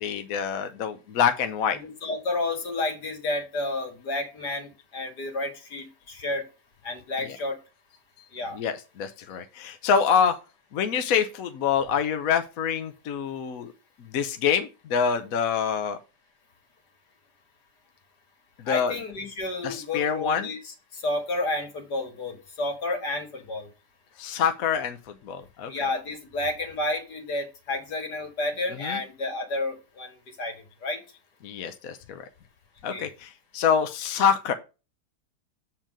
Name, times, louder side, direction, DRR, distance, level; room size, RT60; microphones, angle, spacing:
voice 1, 0.0-1.8 8.5-10.3 10.7-13.7 14.1-16.0 18.6-18.9 19.6-20.5 24.2-25.0 25.2-25.7 28.8-29.0 31.4-32.2 32.8-34.5, left 7 dB, 65° left, 8 dB, 1.1 m, -26 dB
voice 2, 1.7-6.5 6.8-7.6 8.3-8.6 18.7-23.7 25.7-30.5 30.8-31.0 32.9-33.1, left 2 dB, 80° left, 3 dB, 2.5 m, -31 dB
7.4 x 4.6 x 5.1 m, 0.30 s
omnidirectional pair, 1.7 m